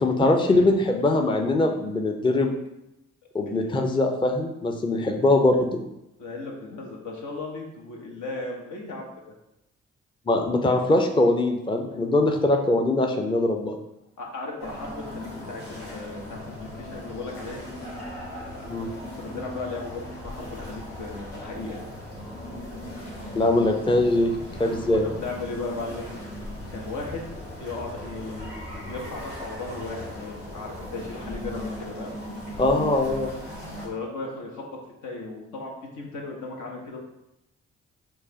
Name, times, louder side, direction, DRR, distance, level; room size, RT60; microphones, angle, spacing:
voice 1, 0.0-2.5 3.3-5.8 10.3-13.8 18.7-18.9 23.3-24.3 24.6-25.0 32.6-33.3, left 2 dB, 15° left, 3 dB, 0.5 m, -22 dB
voice 2, 3.5-3.8 6.2-9.1 14.2-17.6 19.2-21.8 24.7-26.1 26.7-27.2 27.6-32.1 33.8-37.0, left 3 dB, 70° left, 0 dB, 0.9 m, -36 dB
sound 1, 14.6-33.9, left 1 dB, 90° left, 1.0 m, -38 dB
4.6 x 2.4 x 2.8 m, 0.87 s
hypercardioid pair, 45°, 32 cm